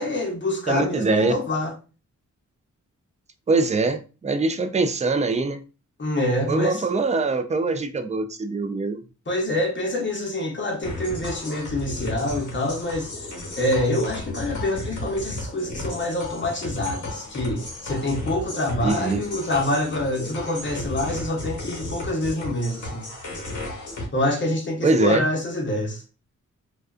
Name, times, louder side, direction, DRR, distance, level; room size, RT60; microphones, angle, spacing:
voice 1, 0.0-1.7 6.0-6.8 9.3-13.1 13.6-23.1 24.1-26.0, left 1 dB, 40° left, 0.9 m, -26 dB
voice 2, 0.7-1.3 3.5-5.6 6.5-9.0 18.8-19.2 24.8-25.2, right 3 dB, 25° right, 0.4 m, -23 dB
sound 1, 10.8-24.1, left 1 dB, 70° left, 1.0 m, -34 dB
2.4 x 2.3 x 2.4 m
cardioid pair, 65°, 31 cm